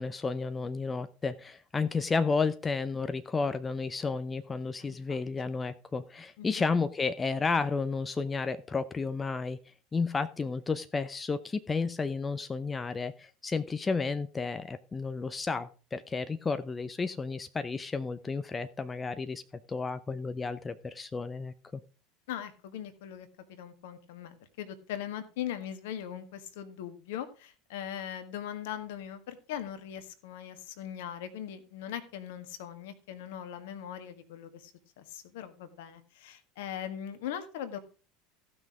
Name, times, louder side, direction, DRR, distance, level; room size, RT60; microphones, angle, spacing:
voice 1, 0.0-9.6 9.9-19.4 19.7-21.8, left 4 dB, 20° left, 11 dB, 0.7 m, -32 dB
voice 2, 4.8-5.2 6.4-6.6 22.3-34.7 35.0-37.8, left 10 dB, 65° left, 10 dB, 1.6 m, -40 dB
15.0 x 6.2 x 4.8 m, 0.35 s
figure-of-eight pair, 75°, 0 cm